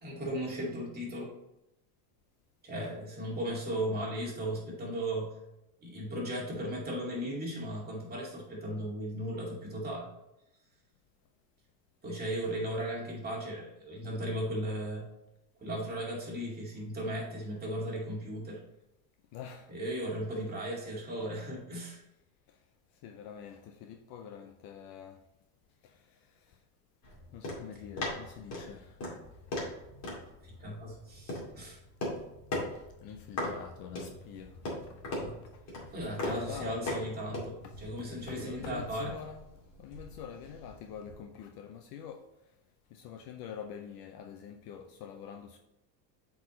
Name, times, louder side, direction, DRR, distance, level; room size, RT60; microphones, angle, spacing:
voice 1, 0.0-1.3 2.6-5.4 5.8-10.1 12.0-15.1 15.6-18.6 19.7-22.0 30.4-31.8 35.2-35.4 35.9-39.1, right 1 dB, 20° right, 2.2 m, -36 dB
voice 2, 19.3-19.7 22.5-22.6 23.0-25.2 25.8-26.6 27.3-29.2 32.7-34.6 34.9-35.0 35.4-35.7 36.2-37.0 37.6-39.4 39.8-42.5 42.9-45.6, left 8 dB, 45° left, 0.6 m, -46 dB
sound 1, 27.0-41.2, left 1 dB, 30° left, 2.4 m, -40 dB
8.0 x 4.7 x 3.1 m
cardioid pair, 145°, 50 cm